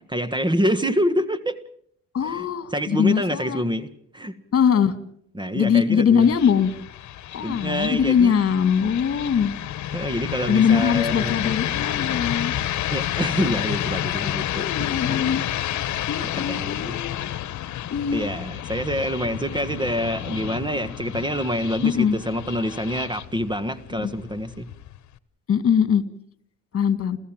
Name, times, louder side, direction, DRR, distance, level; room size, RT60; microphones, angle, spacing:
voice 1, 0.1-1.6 2.2-4.3 5.3-6.3 7.4-8.4 9.9-11.8 12.9-14.9 15.9-17.0 18.1-24.7, equal, 15° right, 13 dB, 1.6 m, -27 dB
voice 2, 2.1-3.6 4.5-4.9 5.5-6.7 7.3-9.5 10.5-12.6 14.5-15.4 16.1-17.3 17.9-18.3 21.8-22.2 24.0-24.1 25.5-26.0 26.7-27.2, left 7 dB, 50° left, 13 dB, 2.1 m, -21 dB
sound 1, 6.2-25.2, left 12 dB, 70° left, 1.2 m, -30 dB
29.5 x 14.5 x 7.5 m, 0.66 s
cardioid pair, 90°, 30 cm